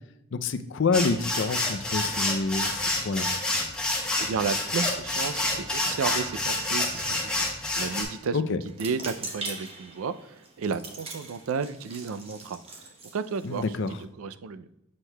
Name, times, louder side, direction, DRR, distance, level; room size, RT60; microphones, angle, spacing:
voice 1, 0.3-3.3 8.3-8.6 13.4-13.9, left 4 dB, 60° left, 11 dB, 0.4 m, -27 dB
sound 1, 0.9-8.0, left 2 dB, 5° left, 1.0 m, -28 dB
voice 2, 4.2-12.8 13.1-13.6 14.2-14.7, right 5 dB, 80° right, 12 dB, 0.4 m, -33 dB
sound 2, 8.7-14.0, right 2 dB, 30° right, 0.9 m, -42 dB
7.4 x 6.3 x 2.2 m, 0.86 s
head